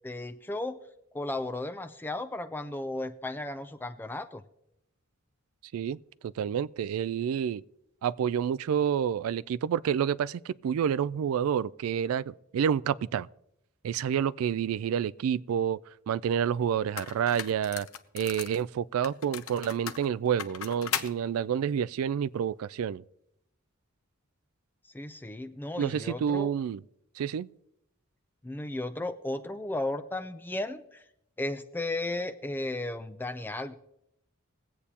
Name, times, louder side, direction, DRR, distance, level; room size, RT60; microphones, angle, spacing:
voice 1, 0.0-0.8 1.1-4.4 24.9-26.5 28.4-31.0 31.4-33.7, left 2 dB, 10° left, 0.4 m, -34 dB
voice 2, 6.2-7.6 8.0-13.3 13.8-15.8 16.1-17.9 18.1-23.0 25.8-26.8 27.2-27.5, right 8 dB, 80° right, 0.3 m, -29 dB
sound 1, 16.3-16.4 17.0-18.6 19.0-21.1, left 9 dB, 75° left, 0.6 m, -37 dB
21.0 x 8.3 x 2.8 m
head